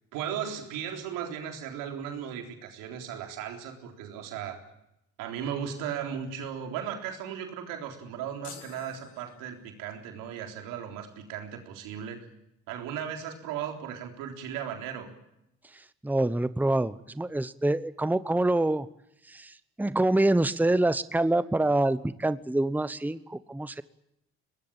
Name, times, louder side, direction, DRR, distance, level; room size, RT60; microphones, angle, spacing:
voice 1, 0.1-4.6 5.2-12.2 12.7-15.1, right 8 dB, 85° right, 3 dB, 3.8 m, -36 dB
sound 1, 8.4-10.0, left 13 dB, 90° left, 1.8 m, -50 dB
voice 2, 15.7-18.9 19.3-23.8, right 2 dB, 5° right, 15 dB, 1.0 m, -26 dB
23.5 x 19.5 x 9.0 m, 0.82 s
supercardioid pair, 60°, 32 cm